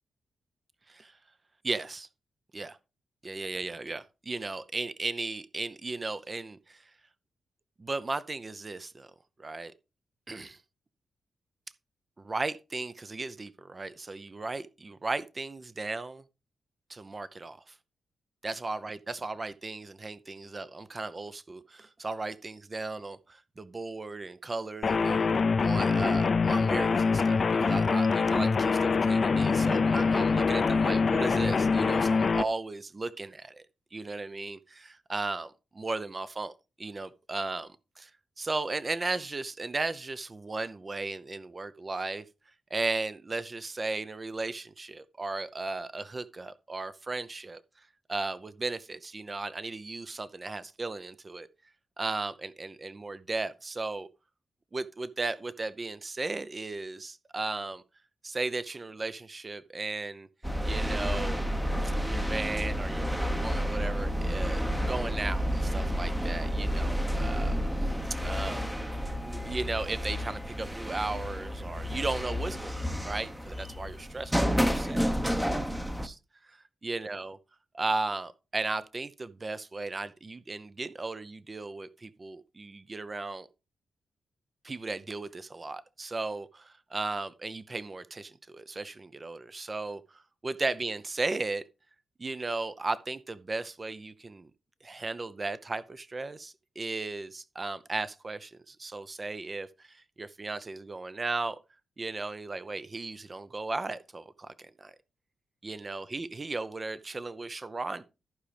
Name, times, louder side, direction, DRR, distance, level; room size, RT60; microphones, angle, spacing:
voice 1, 1.6-2.1 2.5-2.8 3.2-6.9 7.8-9.1 9.4-9.7 10.3-10.6 12.2-16.2 16.9-17.7 18.4-25.3 25.6-33.6 33.9-36.5 36.8-37.7 38.0-38.1 38.4-42.2 42.7-47.6 48.1-51.5 52.0-54.1 54.7-57.8 58.2-60.3 60.6-61.4 61.8-67.6 67.8-67.9 68.2-68.7 69.2-75.4 75.8-76.1 76.4-77.4 77.7-83.5 84.6-91.6 92.2-94.5 94.8-101.6 102.0-104.9 105.6-108.0, right 3 dB, 35° right, 0.7 m, -36 dB
sound 1, 24.8-32.4, left 4 dB, 50° left, 0.5 m, -24 dB
sound 2, 60.4-76.1, equal, 5° right, 0.9 m, -30 dB
14.0 x 5.0 x 3.4 m
cardioid pair, 70°, 0 cm